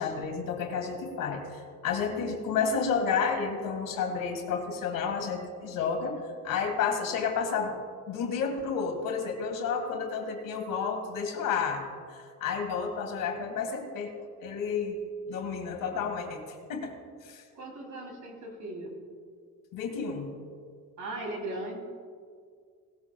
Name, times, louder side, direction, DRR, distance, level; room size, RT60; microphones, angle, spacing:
voice 1, 0.0-6.2 6.4-7.7 8.1-11.8 12.1-14.1 14.4-15.0 15.3-16.4 16.7-17.0 17.2-17.4 19.7-20.3, left 6 dB, 90° left, 3 dB, 1.8 m, -31 dB
voice 2, 17.5-19.0 21.0-21.8, right 2 dB, 65° right, 0 dB, 3.0 m, -38 dB
18.0 x 14.0 x 2.3 m, 2.1 s
cardioid pair, 90°, 32 cm